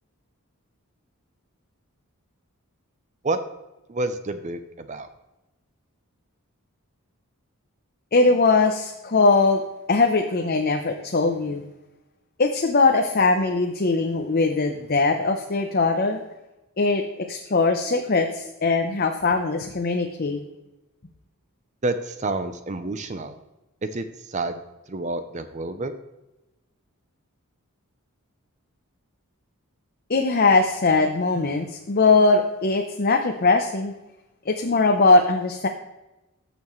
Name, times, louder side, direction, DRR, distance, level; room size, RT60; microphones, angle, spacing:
voice 1, 3.9-5.1 21.8-23.3 23.8-24.6 24.9-25.9, right 2 dB, 35° right, 10 dB, 0.6 m, -29 dB
voice 2, 8.1-9.6 9.9-11.6 12.4-16.2 16.8-20.4 30.1-33.9 34.5-35.7, left 3 dB, 45° left, 4 dB, 0.7 m, -21 dB
14.0 x 7.0 x 3.1 m, 1.0 s
head